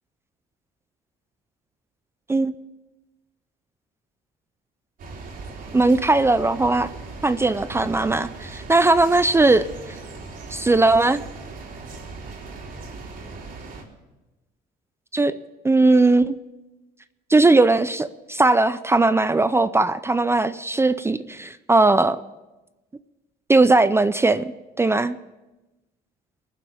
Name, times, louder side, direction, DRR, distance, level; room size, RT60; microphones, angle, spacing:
sound 1, 5.0-13.8, right 3 dB, 55° right, 3.2 m, -38 dB
voice 1, 5.7-6.9 7.2-10.0 10.5-11.2 15.1-15.3 15.6-16.4 17.3-22.2 23.5-25.2, right 2 dB, 15° right, 13 dB, 0.5 m, -19 dB
22.0 x 7.4 x 6.9 m, 1.1 s
cardioid pair, 110°, 17 cm